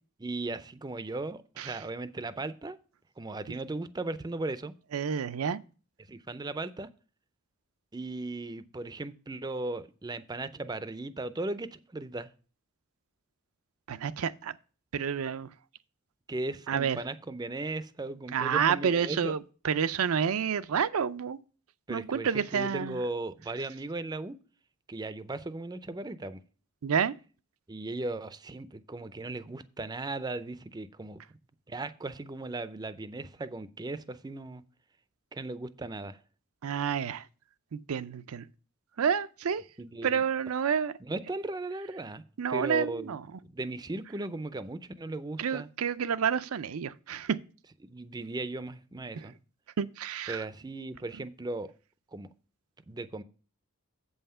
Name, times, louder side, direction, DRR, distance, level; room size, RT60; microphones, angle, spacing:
voice 1, 0.2-2.8 3.2-4.7 6.1-6.9 7.9-12.3 16.3-19.3 21.9-24.4 24.9-26.4 27.7-31.2 31.7-34.6 35.3-36.2 39.8-40.2 41.0-42.2 42.5-45.7 47.9-49.3 50.3-51.7 52.1-52.3 52.9-53.2, right 2 dB, 20° right, 0.4 m, -37 dB
voice 2, 4.9-5.6 13.9-14.5 14.9-15.5 16.7-17.0 18.3-19.4 19.6-21.4 21.9-23.0 26.8-27.1 36.6-37.2 37.7-38.4 39.0-39.6 40.0-40.9 42.4-43.2 45.4-47.4 49.8-50.4, right 7 dB, 80° right, 0.5 m, -29 dB
7.9 x 5.6 x 5.5 m
head